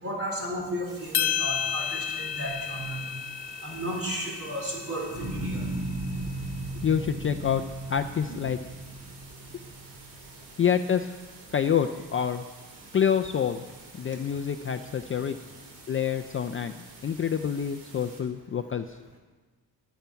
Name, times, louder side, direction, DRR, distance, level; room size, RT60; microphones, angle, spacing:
voice 1, 0.0-3.0 3.6-5.6 8.3-8.4, right 1 dB, 35° right, 0 dB, 3.9 m, -34 dB
sound 1, 0.9-18.2, right 3 dB, 85° right, 3.3 m, -50 dB
sound 2, 1.1-5.6, left 9 dB, 70° left, 1.1 m, -32 dB
sound 3, 5.1-11.4 11.9-12.5, right 1 dB, 50° right, 4.4 m, -36 dB
voice 2, 6.8-7.6 7.9-8.6 10.6-11.1 11.5-12.5 12.9-13.7 13.9-15.4 15.9-19.0, left 8 dB, 35° left, 7 dB, 0.4 m, -27 dB
22.5 x 8.3 x 5.8 m, 1.3 s
wide cardioid pair, 160°, 39 cm